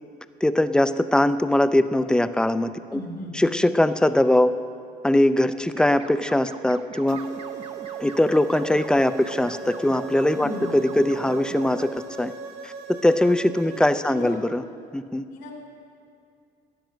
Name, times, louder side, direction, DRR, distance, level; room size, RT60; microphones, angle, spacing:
voice 1, 0.4-3.0 3.3-4.5 5.0-7.3 8.0-12.3 12.6-14.6 14.9-15.2, left 1 dB, 5° left, 11 dB, 0.5 m, -21 dB
voice 2, 2.9-3.3 10.3-10.7 13.6-13.7 14.1-14.4 15.3-15.6, left 2 dB, 80° left, -1 dB, 3.1 m, -36 dB
sound 1, 5.7-12.0, right 5 dB, 35° right, 0.7 m, -41 dB
sound 2, 7.1-14.3, right 4 dB, 90° right, 1.1 m, -39 dB
14.0 x 10.0 x 6.4 m, 2.4 s
cardioid pair, 110°, 17 cm